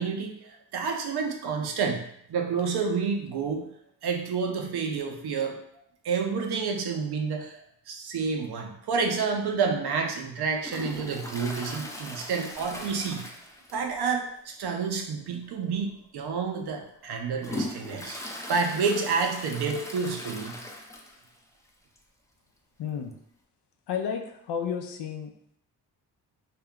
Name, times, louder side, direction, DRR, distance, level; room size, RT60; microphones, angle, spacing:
voice 1, 0.0-3.7 4.0-5.6 6.0-7.6 7.9-13.2 13.7-18.2 18.5-20.6, right 5 dB, 65° right, 3 dB, 0.6 m, -29 dB
Toilet flush, 10.6-14.0 14.3-14.4 14.9-15.0 15.8-15.9 16.5-21.4 21.7-21.8 22.0-22.1 23.1-23.2, left 1 dB, 10° left, 0.4 m, -39 dB
voice 2, 22.8-23.1 23.9-25.3, left 7 dB, 75° left, 5 dB, 0.5 m, -32 dB
2.3 x 2.2 x 3.6 m, 0.70 s
cardioid pair, 55°, 42 cm